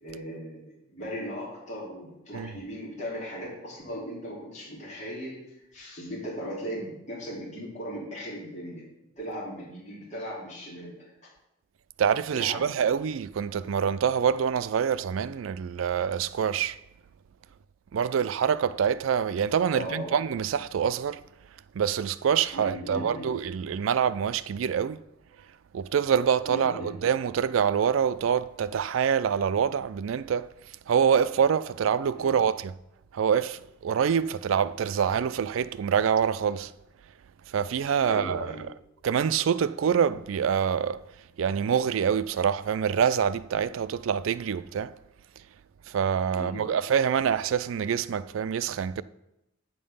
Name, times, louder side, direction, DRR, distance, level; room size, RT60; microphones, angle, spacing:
voice 1, 0.0-8.8 9.2-11.0 12.3-12.8 19.7-20.1 22.5-23.3 26.4-26.9 32.1-32.4 38.0-38.6 46.3-46.7, equal, 35° left, 2.8 m, -38 dB
voice 2, 12.0-16.8 17.9-21.2 21.7-25.0 25.7-30.5 30.9-32.7 33.1-36.7 37.5-38.5 39.0-41.0 41.4-45.0 45.9-49.0, right 7 dB, 85° right, 0.4 m, -26 dB
8.6 x 5.3 x 5.5 m
head